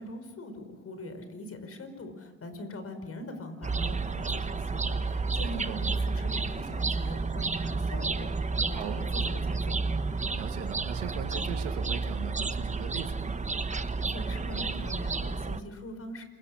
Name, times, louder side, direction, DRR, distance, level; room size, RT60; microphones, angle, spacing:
voice 1, 0.0-9.8 14.1-16.2, left 1 dB, 45° left, 8 dB, 5.2 m, -42 dB
sound 1, 3.6-15.6, right 4 dB, 20° right, 1.2 m, -31 dB
voice 2, 10.3-13.4, right 10 dB, 85° right, 7 dB, 2.2 m, -39 dB
27.5 x 22.5 x 6.5 m, 1.3 s
hypercardioid pair, 60°, 33 cm